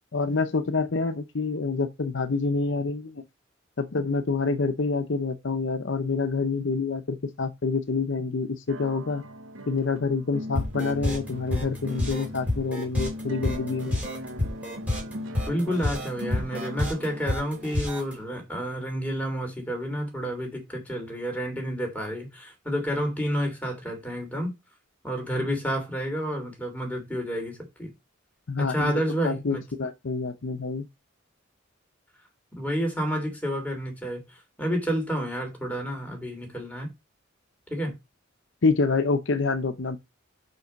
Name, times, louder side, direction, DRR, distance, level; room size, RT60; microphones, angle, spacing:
voice 1, 0.1-3.2 3.8-9.2 9.7-14.0 28.5-30.9 38.6-40.0, left 4 dB, 65° left, 0.7 m, -27 dB
sound 1, 8.7-18.5, equal, 90° right, 1.0 m, -39 dB
sound 2, 10.5-18.1, left 1 dB, 10° right, 3.7 m, -29 dB
voice 2, 15.5-24.5 25.0-27.9 28.6-29.6 32.6-36.9 37.7-37.9, equal, 10° left, 3.0 m, -30 dB
5.9 x 5.5 x 5.2 m
head